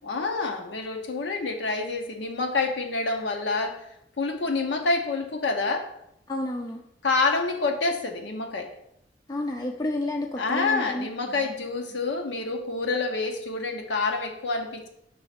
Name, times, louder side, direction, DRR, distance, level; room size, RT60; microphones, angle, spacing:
voice 1, 0.0-3.8 4.2-5.9 7.0-8.7 10.4-14.9, left 3 dB, 85° left, 4 dB, 0.7 m, -27 dB
voice 2, 6.3-6.8 9.3-11.1, left 1 dB, 20° left, 2 dB, 0.4 m, -30 dB
5.5 x 3.3 x 5.7 m, 0.78 s
head